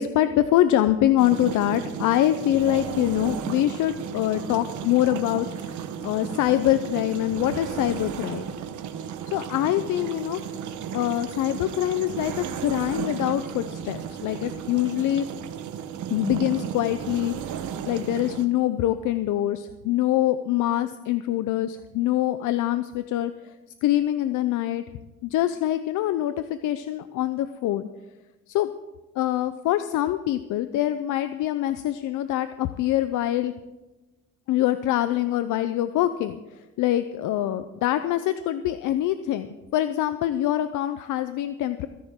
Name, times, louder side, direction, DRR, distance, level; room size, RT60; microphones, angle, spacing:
voice 1, 0.0-8.4 9.3-10.4 10.9-15.3 16.1-23.5 23.8-24.8 25.2-27.9 28.5-28.7 29.2-33.5 34.5-41.9, left 13 dB, 85° left, 11 dB, 0.6 m, -24 dB
sound 1, 1.2-18.5, right 8 dB, 75° right, 1.2 m, -34 dB
24.0 x 10.5 x 3.7 m, 1.1 s
cardioid pair, 90°, 30 cm